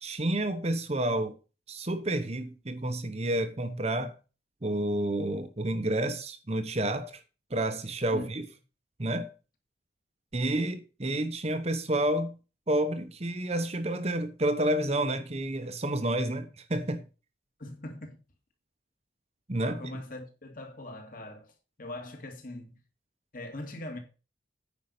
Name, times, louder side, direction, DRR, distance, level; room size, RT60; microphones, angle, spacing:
voice 1, 0.0-1.4 1.7-4.1 4.6-7.2 7.5-8.5 9.0-9.3 10.3-12.4 12.7-17.0 19.5-19.8, right 1 dB, 30° right, 0.9 m, -29 dB
voice 2, 17.6-18.2 19.6-21.5 21.8-22.8 23.3-24.0, left 1 dB, 45° left, 2.4 m, -41 dB
9.6 x 5.5 x 6.7 m
head